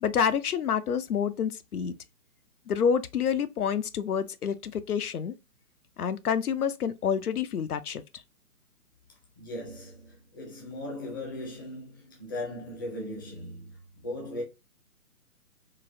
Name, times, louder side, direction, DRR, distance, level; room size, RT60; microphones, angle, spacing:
voice 1, 0.0-1.9 2.7-5.3 6.0-8.2, left 7 dB, 75° left, 0.5 m, -28 dB
voice 2, 9.4-14.4, left 1 dB, 15° left, 0.5 m, -38 dB
3.9 x 2.0 x 2.6 m
figure-of-eight pair, 130°, 45 cm